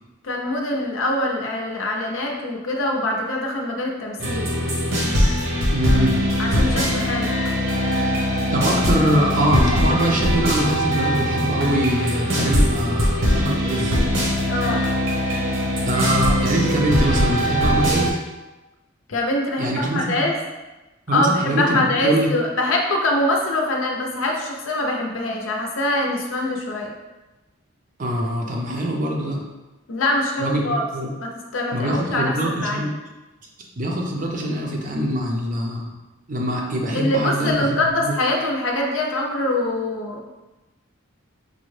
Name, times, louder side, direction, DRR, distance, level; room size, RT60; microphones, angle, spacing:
voice 1, 0.2-4.5 6.4-7.3 14.5-14.8 19.1-20.4 21.1-26.9 29.9-30.8 31.2-32.3 32.6-32.9 36.9-40.3, left 1 dB, 65° left, 1 dB, 0.5 m, -24 dB
sound 1, 4.2-18.1, equal, 65° right, 0.9 m, -21 dB
voice 2, 5.7-6.2 8.5-14.1 15.9-18.2 19.6-20.2 21.1-22.3 28.0-29.4 30.4-31.1 31.7-32.9 33.8-35.9 36.3-37.6 38.0-38.1, right 1 dB, 35° right, 0 dB, 0.5 m, -23 dB
5.1 x 2.2 x 3.1 m, 1.1 s
head